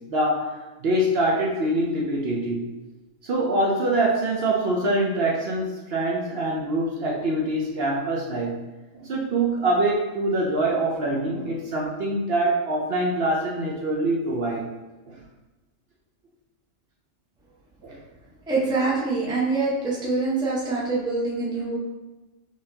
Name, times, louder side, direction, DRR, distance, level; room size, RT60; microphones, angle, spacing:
voice 1, 0.1-0.5 0.8-2.6 3.2-8.6 8.9-14.6 15.1-15.2 17.8-18.0 18.5-18.6, right 1 dB, 60° right, -2 dB, 0.7 m, -24 dB
voice 2, 18.5-21.8, right 3 dB, 5° right, -5 dB, 0.6 m, -25 dB
3.9 x 3.2 x 2.7 m, 1.1 s
omnidirectional pair, 1.3 m